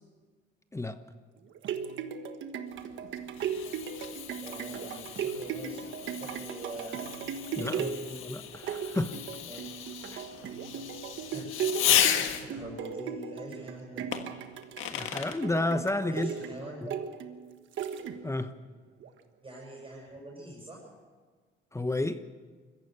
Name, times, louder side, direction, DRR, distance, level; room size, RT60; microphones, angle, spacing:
sound 1, 1.4-18.5 19.0-19.1, right 7 dB, 75° right, 1.5 m, -37 dB
Fireworks, 2.8-12.7 14.1-15.4, left 10 dB, 85° left, 1.6 m, -34 dB
voice 1, 4.4-7.0 7.6-8.0 9.5-9.6 11.3-14.1 16.0-17.0 19.4-20.9, right 1 dB, 25° right, -3 dB, 7.5 m, -44 dB
voice 2, 7.6-9.2 10.1-10.2 14.9-16.9 18.2-18.5 21.7-22.2, left 2 dB, 15° left, 10 dB, 0.9 m, -32 dB
22.0 x 15.0 x 8.2 m, 1.5 s
cardioid pair, 90°, 20 cm